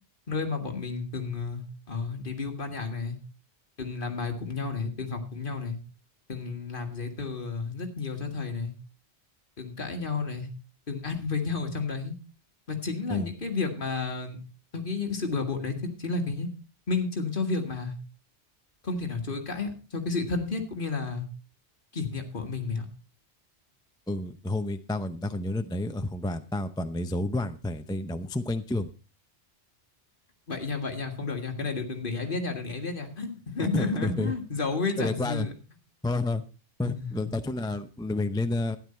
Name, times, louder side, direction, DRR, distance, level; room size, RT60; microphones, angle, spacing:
voice 1, 0.3-3.2 3.8-5.8 6.3-8.7 9.6-10.5 10.9-12.1 12.7-14.4 14.7-16.5 16.9-18.0 18.8-21.3 21.9-22.9 30.5-35.5 36.9-37.3, left 4 dB, 50° left, 4 dB, 1.9 m, -31 dB
voice 2, 24.1-28.9 33.6-34.3 35.0-35.5 36.0-36.4 36.8-38.8, left 2 dB, 5° left, 9 dB, 0.5 m, -30 dB
12.5 x 10.0 x 4.3 m, 0.32 s
omnidirectional pair, 1.2 m